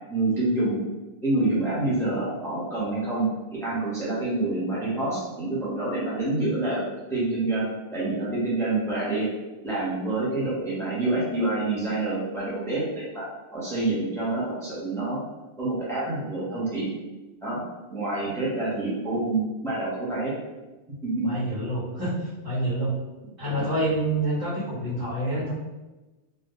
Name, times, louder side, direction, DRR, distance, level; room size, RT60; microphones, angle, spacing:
voice 1, 0.1-0.8 1.2-6.8 7.1-7.7 7.9-9.3 9.6-13.3 13.5-15.2 15.6-17.0 17.4-17.6 17.9-20.3 21.0-21.3, right 2 dB, 5° left, -7 dB, 0.7 m, -27 dB
voice 2, 21.2-22.1 22.4-22.9 23.4-25.5, right 1 dB, 50° right, -12 dB, 1.3 m, -27 dB
2.6 x 2.4 x 3.6 m, 1.1 s
omnidirectional pair, 1.2 m